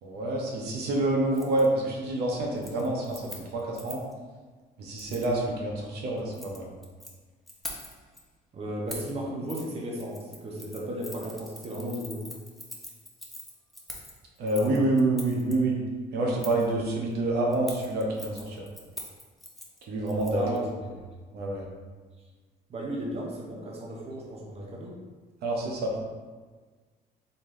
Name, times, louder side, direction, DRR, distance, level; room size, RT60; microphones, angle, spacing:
voice 1, 0.0-4.0 4.8-6.7 14.4-15.8 16.1-18.6 19.9-20.4 21.3-21.7 25.4-26.0, right 2 dB, 70° right, -1 dB, 1.0 m, -27 dB
Keys jangling, 1.3-1.7 2.0-2.3 2.6-4.1 5.0-5.3 6.2-7.1 7.5-8.2 8.9-9.1 9.5-9.7 10.0-15.5 16.4-16.7 17.5-20.6 20.9-21.0, left 1 dB, ahead, 0.7 m, -44 dB
voice 2, 8.5-12.2 20.3-20.6 22.7-25.0, right 1 dB, 35° right, -2 dB, 0.9 m, -35 dB
3.9 x 3.5 x 3.8 m, 1.4 s
cardioid pair, 110°, 17 cm